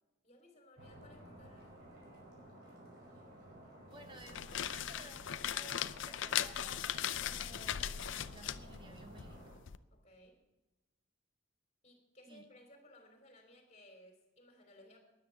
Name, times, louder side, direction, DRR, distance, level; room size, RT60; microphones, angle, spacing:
voice 1, 0.2-1.8 9.9-10.4 11.8-15.0, left 1 dB, 35° left, 4 dB, 3.4 m, -60 dB
sound 1, 0.8-9.6, right 1 dB, 55° right, 5.1 m, -54 dB
voice 2, 3.9-9.6 12.3-12.4, right 2 dB, 25° right, 5 dB, 1.0 m, -57 dB
sound 2, 4.1-9.8, left 10 dB, 75° left, 0.5 m, -39 dB
13.0 x 10.5 x 7.0 m, 1.1 s
head